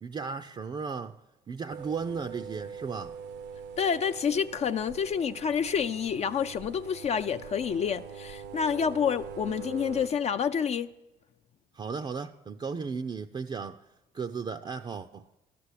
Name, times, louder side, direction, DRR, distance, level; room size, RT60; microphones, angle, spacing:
voice 1, 0.0-1.2 1.5-3.2 11.7-13.9 14.1-15.3, right 5 dB, 30° right, 0.5 m, -35 dB
sound 1, 1.7-10.1, right 6 dB, 85° right, 0.9 m, -43 dB
voice 2, 3.8-10.9, left 7 dB, 40° left, 0.4 m, -28 dB
12.5 x 6.8 x 9.8 m
cardioid pair, 110°, 17 cm